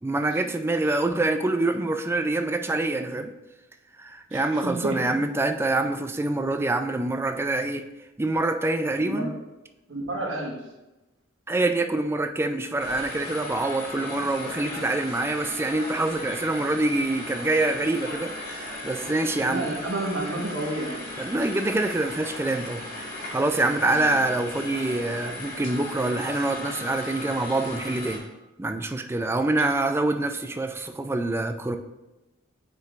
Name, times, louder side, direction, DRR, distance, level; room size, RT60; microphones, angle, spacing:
voice 1, 0.0-3.3 4.0-7.8 8.2-9.3 11.5-19.7 21.2-28.2 28.6-31.8, right 2 dB, 10° right, 7 dB, 0.3 m, -26 dB
voice 2, 4.3-5.0 9.0-9.3 9.9-10.5 19.4-21.1 23.9-24.2 29.5-29.6, right 2 dB, 75° right, -1 dB, 1.3 m, -31 dB
sound 1, 12.8-28.2, left 1 dB, 45° left, 2.2 m, -37 dB
9.6 x 4.6 x 2.4 m, 1.0 s
head